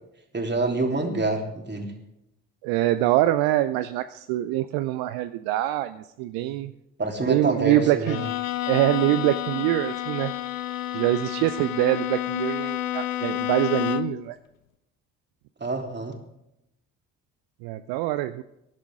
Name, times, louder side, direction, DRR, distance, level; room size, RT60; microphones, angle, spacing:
voice 1, 0.3-1.9 6.4-6.6 7.0-8.2 15.6-16.2, right 2 dB, 25° right, 2 dB, 3.3 m, -27 dB
voice 2, 2.6-6.7 7.2-8.2 8.7-10.3 10.9-14.4 17.6-18.4, right 15 dB, 70° right, 11 dB, 0.6 m, -24 dB
Bowed string instrument, 8.0-14.3, left 13 dB, 90° left, 0.5 m, -30 dB
21.0 x 11.0 x 3.7 m, 0.85 s
figure-of-eight pair, 40°, 39 cm